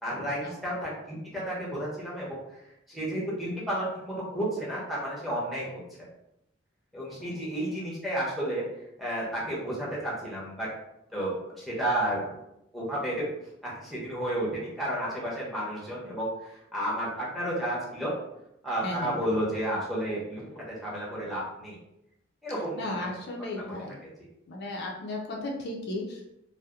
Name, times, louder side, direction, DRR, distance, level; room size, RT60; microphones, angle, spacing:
voice 1, 0.0-2.6 2.9-5.8 6.9-8.6 9.0-10.7 11.1-12.3 12.7-13.3 13.6-18.1 18.6-21.8 22.4-23.1 23.6-23.7, right 1 dB, ahead, -6 dB, 0.6 m, -32 dB
voice 2, 7.3-7.7 18.8-19.2 22.7-24.0 24.5-26.2, left 2 dB, 55° left, -1 dB, 0.4 m, -35 dB
2.7 x 2.0 x 2.3 m, 0.84 s
head